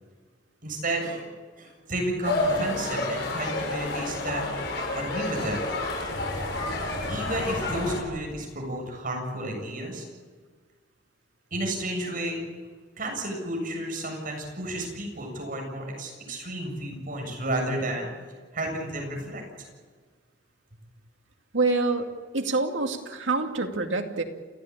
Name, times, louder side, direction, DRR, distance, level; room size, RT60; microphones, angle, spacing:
voice 1, 0.6-1.2 1.6-4.4 4.9-5.9 7.1-10.0 11.5-12.5 13.0-18.1 18.5-19.4, right 1 dB, 45° right, 2 dB, 7.5 m, -32 dB
sound 1, 2.2-8.0, left 2 dB, 65° left, 7.0 m, -29 dB
voice 2, 21.5-22.1 22.3-24.2, right 3 dB, 80° right, 4 dB, 2.4 m, -26 dB
29.0 x 16.0 x 8.7 m, 1.5 s
head